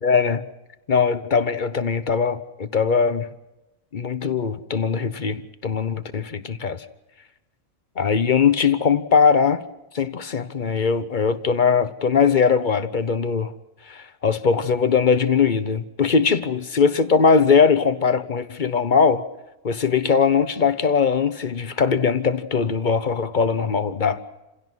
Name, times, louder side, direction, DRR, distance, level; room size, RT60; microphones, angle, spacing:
voice 1, 0.0-0.4 0.9-3.3 3.9-6.8 8.0-9.6 9.9-13.5 13.9-19.2 19.6-24.2, left 5 dB, 40° left, 0.9 m, -20 dB
27.5 x 16.5 x 6.2 m
omnidirectional pair, 1.4 m